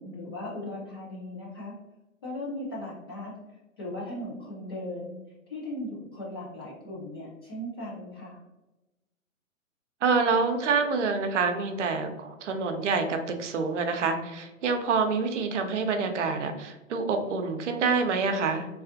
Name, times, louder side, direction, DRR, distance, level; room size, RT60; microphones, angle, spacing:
voice 1, 0.0-1.7 2.2-3.3 3.8-5.2 5.5-8.4, left 1 dB, 20° left, -6 dB, 0.3 m, -37 dB
voice 2, 10.0-18.7, right 4 dB, 60° right, 6 dB, 0.6 m, -27 dB
3.3 x 2.4 x 2.5 m, 1.0 s
figure-of-eight pair, 120°, 40 cm